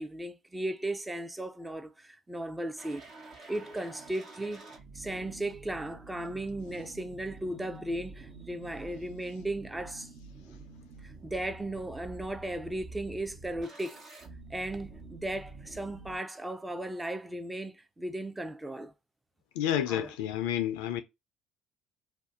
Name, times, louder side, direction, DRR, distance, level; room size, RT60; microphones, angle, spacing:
voice 1, 0.0-3.0 3.5-4.7 4.9-10.1 11.0-14.0 14.5-18.9 19.9-20.1, right 1 dB, 15° right, 0.5 m, -36 dB
sound 1, 2.8-16.2, right 3 dB, 55° right, 1.1 m, -48 dB
voice 2, 19.6-21.0, left 11 dB, 80° left, 0.4 m, -30 dB
2.5 x 2.2 x 3.6 m
hypercardioid pair, 65°, 0 cm